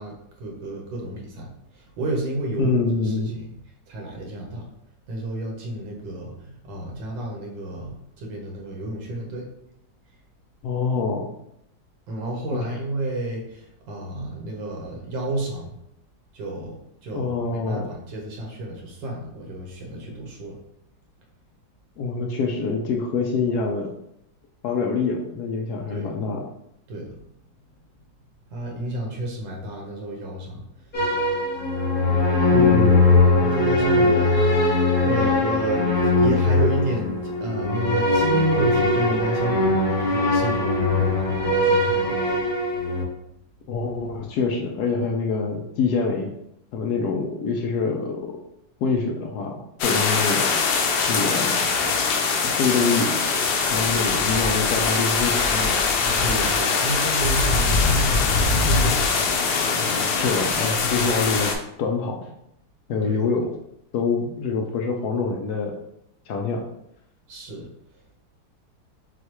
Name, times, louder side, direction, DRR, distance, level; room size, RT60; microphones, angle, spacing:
voice 1, 0.0-3.6 3.9-4.7 5.1-9.5 12.1-15.8 16.3-20.6 25.9-26.1 26.9-27.2 28.5-30.8 33.3-34.4 34.7-35.9 36.2-42.5 56.0-59.5 63.0-63.3 67.3-67.7, right 1 dB, 85° right, 0 dB, 1.7 m, -31 dB
voice 2, 2.6-3.3 10.6-11.3 12.5-12.6 17.1-17.9 22.0-23.9 24.6-26.4 32.5-33.0 43.7-46.3 46.7-48.3 48.8-50.5 51.1-51.7 52.4-53.1 53.7-55.7 60.2-61.5 61.8-62.3 62.9-63.4 63.9-65.8 66.3-66.6, left 4 dB, 70° left, 2 dB, 1.0 m, -25 dB
sound 1, 30.9-43.1, left 2 dB, 35° left, 1.1 m, -20 dB
sound 2, 49.8-61.6, left 4 dB, 85° left, 1.4 m, -22 dB
6.3 x 2.3 x 3.0 m, 0.79 s
omnidirectional pair, 2.0 m